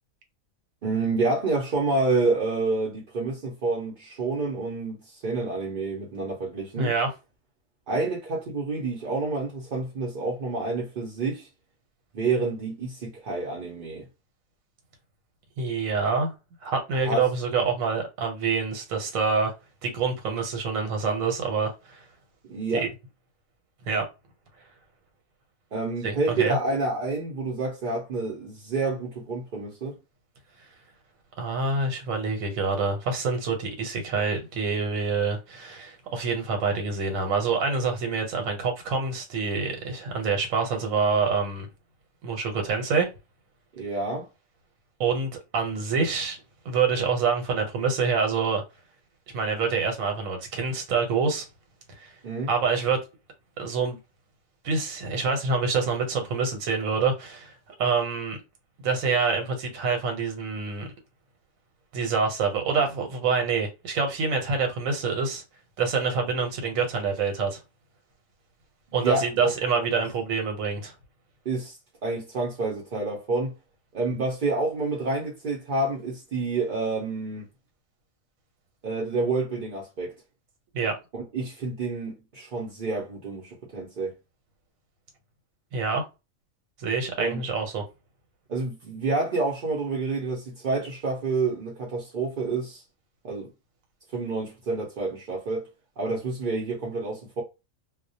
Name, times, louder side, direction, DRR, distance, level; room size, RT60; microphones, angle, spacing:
voice 1, 0.8-6.9 7.9-11.5 12.1-14.1 17.0-17.3 22.4-22.9 25.7-30.0 43.7-44.3 52.2-52.5 68.9-69.5 69.8-69.9 71.4-73.5 73.9-77.5 78.8-80.2 81.1-84.1 87.2-87.4 88.5-92.8 93.2-93.5 94.1-95.7 96.0-97.4, right 3 dB, 55° right, 0.6 m, -28 dB
voice 2, 6.8-7.1 15.6-16.3 16.6-19.5 19.8-22.0 22.8-22.9 23.9-24.1 26.0-26.6 31.4-41.7 42.2-43.1 45.0-46.4 46.6-48.6 49.3-51.5 52.0-52.1 52.5-53.0 53.6-54.0 54.6-57.5 57.8-58.4 58.8-60.9 61.9-65.4 65.8-67.6 68.9-70.9 80.7-80.9 85.7-86.0 86.8-87.8, right 5 dB, 85° right, 1.1 m, -26 dB
2.2 x 2.1 x 2.7 m
omnidirectional pair, 1.4 m